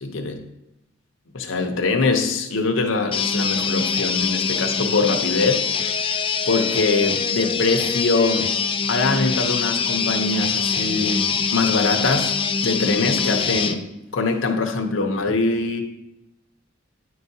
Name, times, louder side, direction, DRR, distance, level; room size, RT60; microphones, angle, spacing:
voice 1, 0.0-0.5 1.3-6.0 6.5-8.6 8.9-12.3 12.6-15.8, left 3 dB, 80° left, 3 dB, 0.8 m, -23 dB
sound 1, 3.1-13.8, left 5 dB, 25° left, 0.4 m, -24 dB
9.8 x 4.7 x 2.7 m, 0.90 s
head